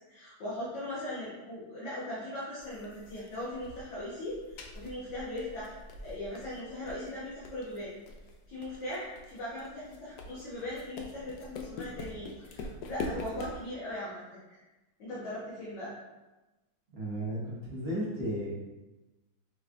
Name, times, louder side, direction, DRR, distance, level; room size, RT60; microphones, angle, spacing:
voice 1, 0.1-5.7 6.0-7.9 8.5-14.2 14.5-14.6 15.0-15.9, left 1 dB, 60° left, -10 dB, 1.8 m, -39 dB
sound 1, 2.6-13.7, left 2 dB, 90° left, 0.8 m, -44 dB
voice 2, 17.0-18.5, equal, 40° right, -7 dB, 1.0 m, -34 dB
5.9 x 3.1 x 2.5 m, 1.1 s
omnidirectional pair, 2.3 m